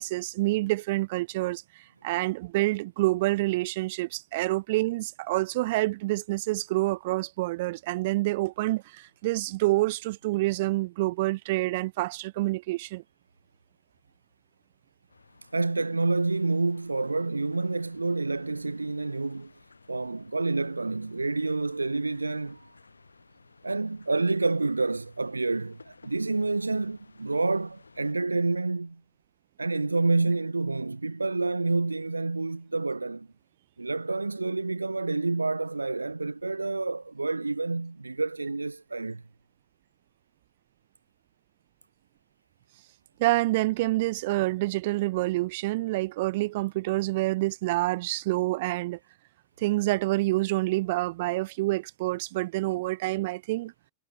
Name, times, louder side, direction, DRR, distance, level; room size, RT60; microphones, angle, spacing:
voice 1, 0.0-1.6 2.0-13.0 43.2-49.0 49.6-53.7, right 19 dB, 50° right, 2.5 m, -27 dB
sound 1, 15.1-28.1, left 4 dB, 80° left, 7.8 m, -57 dB
voice 2, 15.5-19.5 19.9-22.7 23.6-29.0 29.6-33.3 33.8-39.2, right 3 dB, 80° right, 1.4 m, -28 dB
figure-of-eight pair, 90°, 0 cm